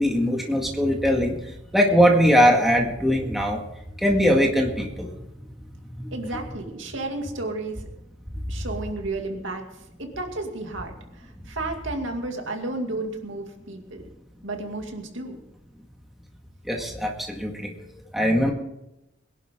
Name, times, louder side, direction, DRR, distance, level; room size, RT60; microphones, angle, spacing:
voice 1, 0.0-3.6 4.0-5.1 6.0-6.2 16.6-18.5, equal, ahead, 0 dB, 1.9 m, -21 dB
voice 2, 6.1-7.8 8.5-14.1 14.4-15.4, right 2 dB, 70° right, 3 dB, 2.4 m, -32 dB
22.0 x 11.0 x 3.8 m, 0.88 s
head